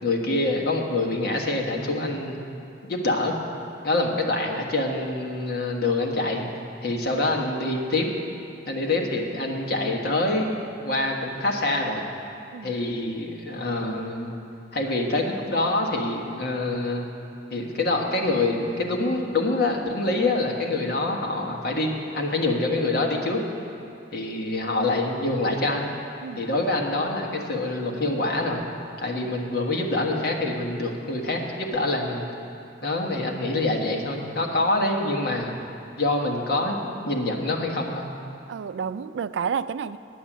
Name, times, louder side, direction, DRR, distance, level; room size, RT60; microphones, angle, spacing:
voice 1, 0.0-2.4 2.8-3.3 3.8-6.5 6.8-8.1 8.7-12.0 12.6-14.3 14.7-17.1 17.5-23.4 24.1-25.9 26.4-28.6 29.0-32.3 32.8-35.5 36.0-36.8 37.1-38.1, left 2 dB, 60° left, 0 dB, 1.4 m, -25 dB
voice 2, 38.5-40.0, right 6 dB, 90° right, 14 dB, 0.3 m, -30 dB
10.0 x 8.5 x 7.3 m, 2.6 s
head